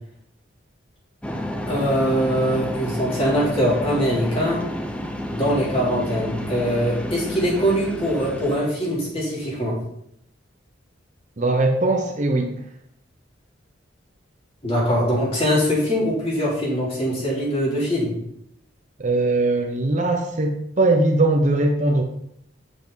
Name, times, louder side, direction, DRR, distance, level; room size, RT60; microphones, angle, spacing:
sound 1, 1.2-8.6, equal, 5° left, 0.6 m, -30 dB
voice 1, 1.7-4.6 5.3-9.8 14.6-18.2, equal, 30° left, -5 dB, 3.2 m, -22 dB
voice 2, 11.4-12.5 19.0-22.0, right 2 dB, 40° right, 4 dB, 0.8 m, -20 dB
7.9 x 7.0 x 4.0 m, 0.75 s
head